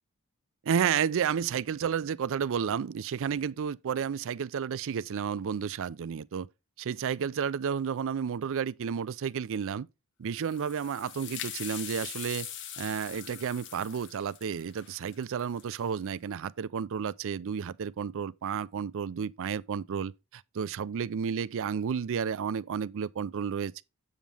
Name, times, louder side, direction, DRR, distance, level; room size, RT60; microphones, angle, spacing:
voice 1, 0.6-6.5 6.8-9.9 10.2-12.5 12.8-23.8, right 7 dB, 60° right, 0.4 m, -31 dB
sound 1, 10.4-15.9, left 10 dB, 55° left, 0.8 m, -42 dB
7.3 x 7.2 x 3.4 m
head